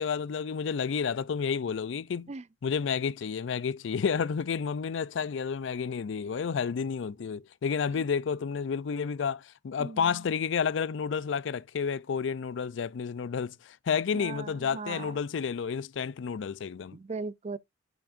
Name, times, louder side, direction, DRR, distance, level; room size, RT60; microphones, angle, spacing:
voice 1, 0.0-2.3 2.6-17.0, left 6 dB, 75° left, 0.4 m, -30 dB
voice 2, 9.8-10.2 14.2-15.2 16.9-17.6, right 4 dB, 35° right, 0.5 m, -38 dB
8.5 x 6.0 x 2.5 m
head